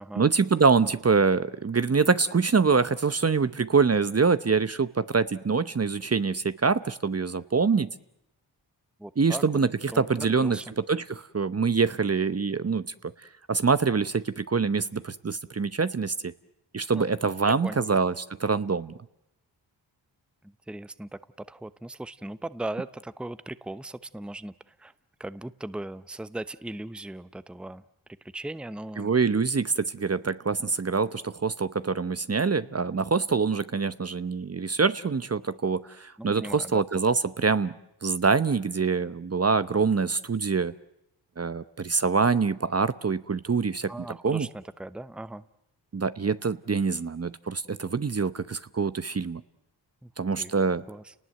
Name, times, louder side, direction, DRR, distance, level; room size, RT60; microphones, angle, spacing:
voice 1, 0.2-7.9 9.2-12.9 13.5-16.3 16.7-18.9 29.0-37.7 38.0-40.7 41.4-43.9 44.2-44.5 45.9-49.4 50.2-50.8, right 5 dB, 35° right, 13 dB, 0.9 m, -25 dB
voice 2, 9.0-9.4 9.9-10.7 16.9-17.0 17.4-18.0 20.4-21.2 21.5-24.9 25.2-27.8 28.2-29.1 36.2-36.8 43.9-45.4 50.0-50.1 50.4-50.5 50.9-51.1, right 1 dB, ahead, 15 dB, 0.8 m, -38 dB
29.5 x 19.5 x 7.7 m, 0.83 s
cardioid pair, 40°, 45 cm